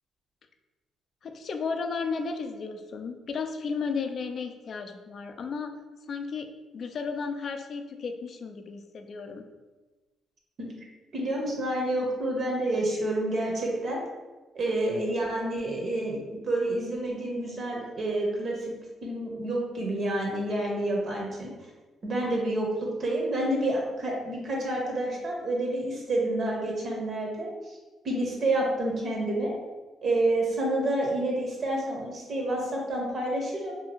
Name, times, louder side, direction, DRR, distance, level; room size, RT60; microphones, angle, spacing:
voice 1, 1.2-5.7 6.1-9.4, left 5 dB, 55° left, 6 dB, 0.3 m, -34 dB
voice 2, 11.1-14.0 14.5-18.7 19.0-21.5 22.0-27.8 28.0-29.6 30.0-33.8, right 1 dB, 50° right, -1 dB, 0.7 m, -29 dB
2.7 x 2.5 x 2.8 m, 1.2 s
cardioid pair, 90°, 0 cm